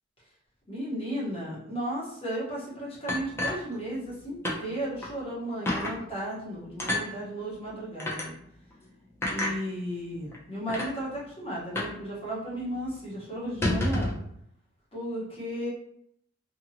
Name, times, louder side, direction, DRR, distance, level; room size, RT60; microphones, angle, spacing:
voice 1, 0.7-8.3 9.3-14.1 14.9-15.7, equal, 30° left, -6 dB, 1.1 m, -34 dB
sound 1, 3.1-4.2 4.4-4.6 5.0-5.1 5.7-6.0 6.8-7.1 8.0-8.3 9.2-9.6 10.3-10.4 10.7-10.9 11.8-12.0 12.3-12.4 12.7-12.9 13.4-14.2, left 1 dB, 10° left, 0.5 m, -29 dB
2.8 x 2.6 x 2.7 m, 0.70 s
head